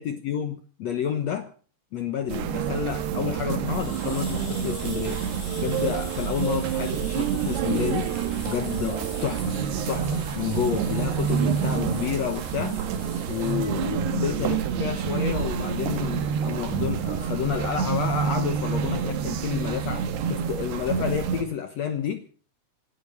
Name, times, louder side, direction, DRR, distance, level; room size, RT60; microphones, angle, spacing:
voice 1, 0.0-1.5 1.9-5.3 5.6-8.1 8.5-9.6 9.9-12.8 13.3-22.2, left 8 dB, 85° left, 1.5 m, -30 dB
sound 1, 2.3-21.4, right 7 dB, 80° right, 3.6 m, -28 dB
sound 2, 3.7-13.5, left 3 dB, 55° left, 7.9 m, -44 dB
27.0 x 12.5 x 4.2 m
omnidirectional pair, 4.7 m